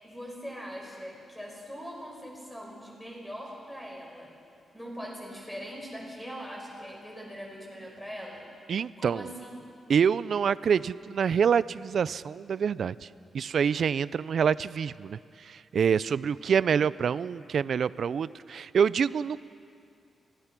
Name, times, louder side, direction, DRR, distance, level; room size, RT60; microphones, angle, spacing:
voice 1, 0.0-4.3 4.7-8.5 9.0-9.6, equal, 5° left, -2 dB, 5.2 m, -41 dB
voice 2, 8.7-9.3 9.9-13.1 13.3-19.4, right 7 dB, 55° right, 18 dB, 0.4 m, -26 dB
26.5 x 17.5 x 6.0 m, 2.4 s
wide cardioid pair, 140°, 0 cm